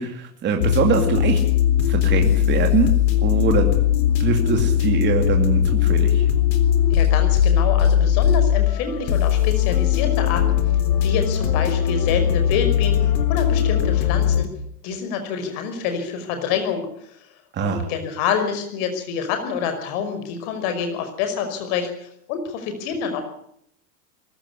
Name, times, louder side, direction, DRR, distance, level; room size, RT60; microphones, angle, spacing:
voice 1, 0.0-1.4 1.8-2.9 3.2-3.7 4.2-6.3 17.5-17.9, right 6 dB, 20° right, 3 dB, 2.5 m, -23 dB
sound 1, 0.6-14.5, left 10 dB, 85° left, 3.9 m, -19 dB
voice 2, 6.9-10.6 11.0-14.5 14.8-17.2 17.6-23.2, left 6 dB, 45° left, 7 dB, 5.6 m, -27 dB
23.0 x 14.5 x 9.9 m, 0.71 s
supercardioid pair, 145°, 48 cm